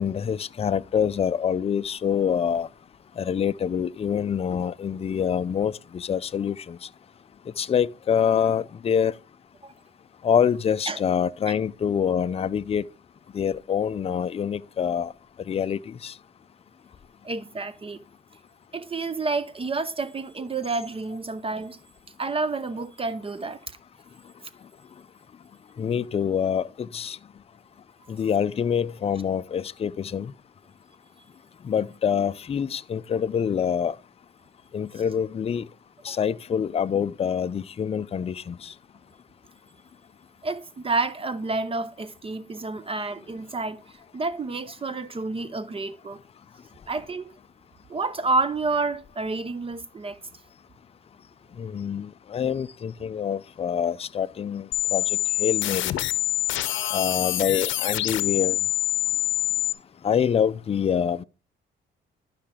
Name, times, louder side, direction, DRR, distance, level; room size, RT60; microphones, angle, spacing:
voice 1, 0.0-2.7 3.2-6.8 7.6-9.1 10.2-12.8 13.3-15.1 15.5-16.1 25.8-27.2 28.1-30.3 31.6-33.9 34.7-35.6 36.0-38.7 51.6-56.0 56.9-58.6 60.0-61.2, left 8 dB, 30° left, 0.4 m, -26 dB
voice 2, 17.2-18.0 18.7-21.8 22.2-23.6 36.1-36.2 40.4-46.2 46.9-47.3 47.9-50.2, right 3 dB, 30° right, 0.6 m, -29 dB
sound 1, 54.7-59.7, left 17 dB, 75° left, 0.7 m, -26 dB
12.0 x 5.7 x 3.6 m
cardioid pair, 90°, 20 cm